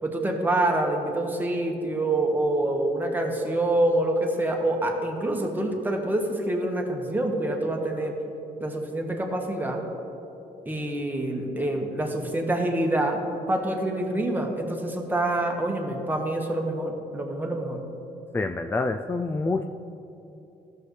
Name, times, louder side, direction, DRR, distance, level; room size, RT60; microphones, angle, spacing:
voice 1, 0.0-8.1 8.6-9.8 10.6-13.2 13.5-17.8, right 1 dB, 10° right, 1 dB, 1.4 m, -26 dB
voice 2, 18.3-19.6, left 3 dB, 15° left, 6 dB, 0.3 m, -27 dB
14.0 x 6.6 x 3.2 m, 3.0 s
supercardioid pair, 75°, 16 cm